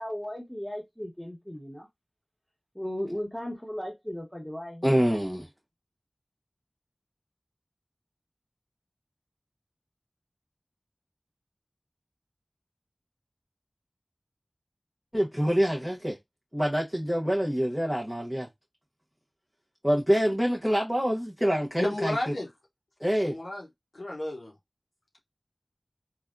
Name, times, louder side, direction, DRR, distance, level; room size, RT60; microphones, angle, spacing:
voice 1, 0.0-1.9 2.7-5.0, equal, 10° left, 1.1 m, -36 dB
voice 2, 4.8-5.5 15.1-16.2 16.5-18.5 19.8-22.1 23.0-23.3, equal, 5° right, 0.7 m, -26 dB
voice 3, 21.8-22.5 23.2-23.7 23.9-24.5, left 1 dB, 90° left, 0.7 m, -32 dB
3.3 x 2.3 x 2.4 m
wide cardioid pair, 40°, 0 cm